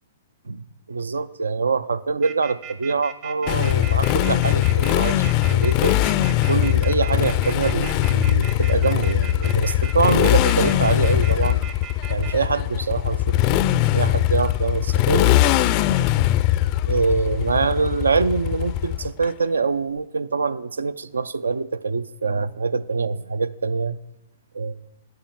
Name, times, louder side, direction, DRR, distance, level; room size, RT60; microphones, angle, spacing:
voice 1, 0.5-6.0 6.5-11.6 12.1-15.5 16.9-24.0 24.5-24.8, right 4 dB, 85° right, 0.3 m, -24 dB
sound 1, 2.2-12.3, right 10 dB, 40° right, 0.8 m, -38 dB
Motorcycle, 3.5-19.3, left 14 dB, 40° left, 0.3 m, -21 dB
8.9 x 4.3 x 7.2 m
hypercardioid pair, 115°, 0 cm